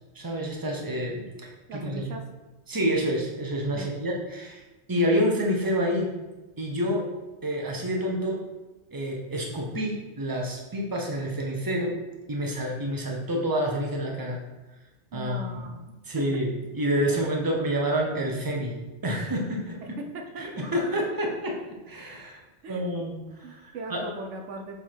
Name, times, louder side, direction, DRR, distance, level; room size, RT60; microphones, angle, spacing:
voice 1, 0.1-2.0 2.7-4.6 4.9-6.1 6.6-7.1 7.4-8.4 8.9-12.0 12.3-14.4 15.1-15.6 16.0-16.5 16.7-18.8 19.0-19.8 20.4-21.6 21.9-24.0, equal, 20° right, -1 dB, 1.0 m, -28 dB
voice 2, 1.7-2.2 3.8-3.9 15.1-15.8 16.2-16.4 17.1-17.2 19.8-20.7 22.6-23.0 23.4-24.8, right 1 dB, 85° right, 4 dB, 1.1 m, -39 dB
7.1 x 4.1 x 4.6 m, 1.1 s
omnidirectional pair, 1.2 m